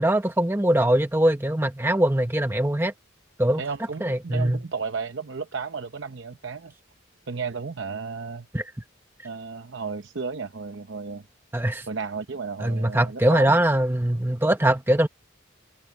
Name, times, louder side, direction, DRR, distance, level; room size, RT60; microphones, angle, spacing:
voice 1, 0.0-2.9 3.4-3.6 4.0-4.6 8.5-8.6 11.5-11.9 12.6-15.1, right 1 dB, 10° right, 0.8 m, -22 dB
voice 2, 3.6-6.7 7.3-8.5 9.2-11.3 11.9-13.6, right 5 dB, 65° right, 0.8 m, -33 dB
head